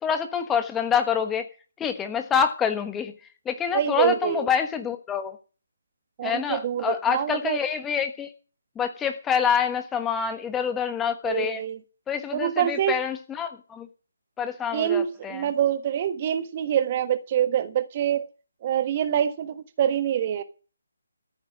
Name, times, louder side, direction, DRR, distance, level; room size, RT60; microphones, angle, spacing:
voice 1, 0.0-1.5 1.8-3.1 3.4-5.4 6.2-8.3 8.7-11.6 12.1-13.9 14.4-15.5, left 7 dB, 10° left, 1.3 m, -26 dB
voice 2, 3.7-4.5 6.2-7.6 11.2-11.8 12.3-13.0 14.7-18.3 18.6-20.4, right 10 dB, 35° right, 1.4 m, -25 dB
14.0 x 9.5 x 6.2 m
figure-of-eight pair, 145°, 0 cm